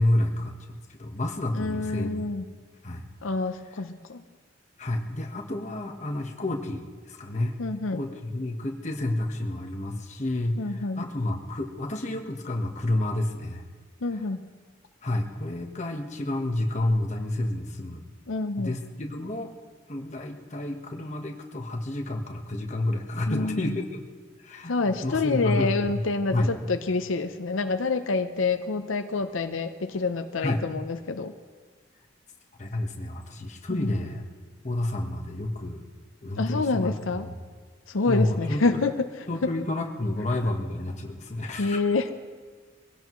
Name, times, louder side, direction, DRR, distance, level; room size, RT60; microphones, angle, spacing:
voice 1, 0.0-2.2 2.8-3.1 4.8-7.6 7.9-13.6 15.0-18.0 18.6-19.5 19.9-23.8 24.4-26.0 26.3-26.5 30.4-30.6 32.6-34.2 34.6-35.9 36.2-37.3 38.1-38.8 39.3-41.8, left 1 dB, 35° left, 2 dB, 1.3 m, -29 dB
voice 2, 1.5-2.4 3.2-4.2 7.6-8.0 10.6-11.0 14.0-14.4 18.3-18.8 23.3-23.8 24.7-31.3 33.7-33.9 36.4-37.3 37.9-39.1 41.6-42.1, left 3 dB, 85° left, 8 dB, 0.7 m, -27 dB
22.5 x 16.5 x 3.1 m, 1.5 s
head